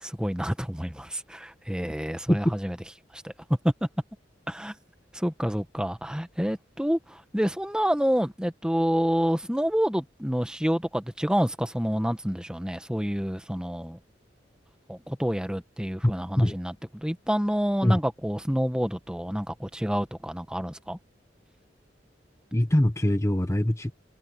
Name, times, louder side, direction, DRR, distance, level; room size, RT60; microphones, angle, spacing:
voice 1, 0.0-2.7 3.1-3.3 3.6-3.7 4.5-4.7 5.1-14.0 14.9-21.0, equal, 5° right, 1.3 m, -28 dB
voice 2, 22.5-23.9, left 1 dB, 15° left, 1.0 m, -22 dB
head